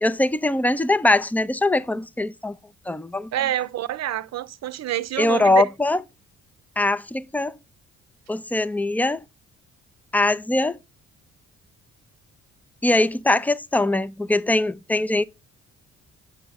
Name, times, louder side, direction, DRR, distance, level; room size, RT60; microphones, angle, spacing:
voice 1, 0.0-2.5 2.9-3.3 5.2-6.0 6.8-7.6 8.3-9.2 10.1-10.8 12.8-15.2, left 2 dB, 5° left, 0.5 m, -22 dB
voice 2, 3.3-5.7, right 12 dB, 60° right, 0.7 m, -27 dB
7.0 x 6.1 x 3.6 m
cardioid pair, 90°, 30 cm